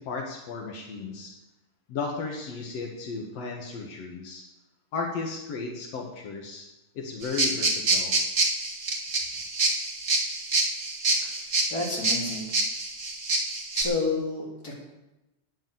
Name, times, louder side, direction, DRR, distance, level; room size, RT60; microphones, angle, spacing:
voice 1, 0.0-1.3 1.9-4.4 4.9-6.7 6.9-8.2, left 4 dB, 80° left, 0 dB, 1.4 m, -34 dB
sound 1, 7.2-13.8, right 2 dB, 70° right, 0.8 m, -26 dB
voice 2, 11.7-12.5 13.7-14.8, left 3 dB, 25° left, -4 dB, 3.1 m, -30 dB
10.0 x 9.6 x 7.6 m, 0.97 s
omnidirectional pair, 5.3 m